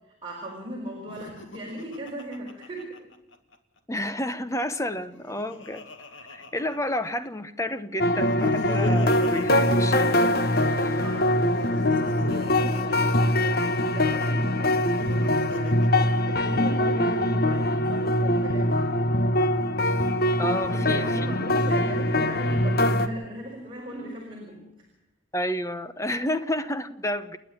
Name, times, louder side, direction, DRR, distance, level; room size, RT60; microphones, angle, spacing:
voice 1, 0.2-3.1 11.0-19.0 20.6-24.9, right 1 dB, 25° right, -2 dB, 5.2 m, -37 dB
Laughter, 1.0-3.6 4.9-7.3 8.1-10.7 11.5-13.9 14.8-16.7, left 2 dB, 70° left, 2.1 m, -39 dB
voice 2, 3.9-5.9 6.3-11.0 20.4-21.1 25.3-27.4, left 1 dB, 15° left, 12 dB, 0.9 m, -30 dB
sound 1, 8.0-23.1, left 1 dB, 50° left, 1.2 m, -23 dB
29.5 x 10.0 x 8.9 m, 0.89 s
head